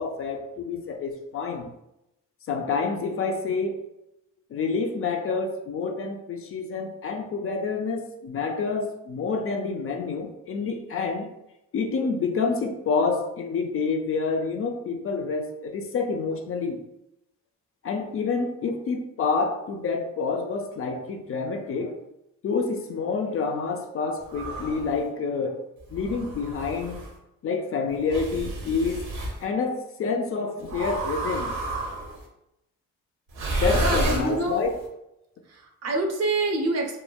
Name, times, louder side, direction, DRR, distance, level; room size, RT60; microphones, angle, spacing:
voice 1, 0.0-1.7 2.5-3.8 4.5-11.3 11.7-16.8 17.8-22.0 22.4-25.6 25.9-27.0 27.4-29.0 29.4-31.5 33.6-34.7, left 4 dB, 45° left, 4 dB, 0.4 m, -28 dB
sound 1, 24.3-24.9 25.9-27.1 28.1-29.4 30.7-32.2 33.3-34.7, right 2 dB, 85° right, 0.8 m, -30 dB
voice 2, 33.7-34.7 35.5-37.0, right 2 dB, 55° right, 3 dB, 0.6 m, -27 dB
3.0 x 2.1 x 2.3 m, 0.85 s
cardioid pair, 90°, 30 cm